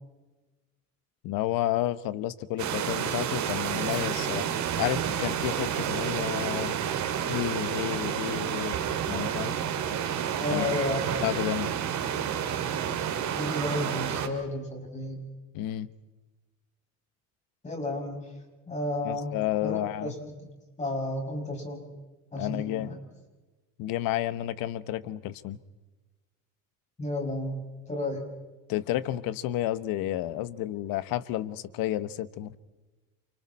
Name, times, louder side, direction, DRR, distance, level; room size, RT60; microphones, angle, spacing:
voice 1, 1.2-4.5 4.8-6.8 7.3-8.8 9.1-9.6 10.5-10.6 11.2-11.7 15.5-15.9 19.0-20.1 22.4-22.9 23.8-25.6 28.7-32.5, left 13 dB, 80° left, 14 dB, 1.2 m, -31 dB
sound 1, 2.6-14.3, right 9 dB, 55° right, 2.7 m, -30 dB
voice 2, 10.4-11.1 13.3-15.2 17.6-18.3 18.7-19.3 19.6-20.5 20.8-21.9 22.3-23.0 27.0-27.6 27.9-28.2, left 1 dB, 20° left, 1 dB, 6.7 m, -32 dB
29.5 x 28.5 x 4.3 m, 1.2 s
cardioid pair, 135°, 34 cm